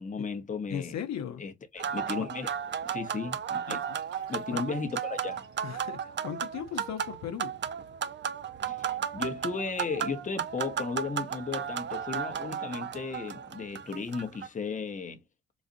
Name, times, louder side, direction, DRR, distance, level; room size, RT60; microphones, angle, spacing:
voice 1, 0.0-1.0 1.4-2.5 2.8-3.8 4.3-5.4 8.7-15.2, left 4 dB, 25° left, 0.8 m, -35 dB
voice 2, 0.7-1.4 3.7-4.0 4.5-4.6 5.6-7.5, left 9 dB, 65° left, 0.7 m, -37 dB
sound 1, 1.8-14.5, right 8 dB, 40° right, 0.4 m, -34 dB
sound 2, 3.8-7.4 7.9-8.0 8.6-8.7, right 3 dB, 75° right, 2.0 m, -62 dB
4.0 x 2.4 x 2.5 m
cardioid pair, 90°, 30 cm